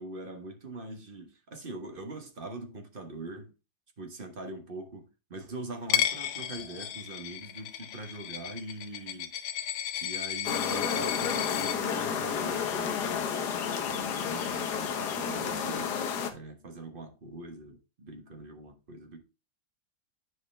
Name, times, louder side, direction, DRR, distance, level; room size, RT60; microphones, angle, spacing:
voice 1, 0.0-3.5 4.0-9.3 10.0-13.3 13.8-16.0 16.3-19.2, right 2 dB, 35° right, 1.1 m, -42 dB
Coin (dropping), 5.9-11.8, left 10 dB, 80° left, 1.4 m, -33 dB
sound 1, 10.4-16.3, left 7 dB, 65° left, 1.4 m, -31 dB
9.6 x 5.1 x 3.3 m
omnidirectional pair, 2.1 m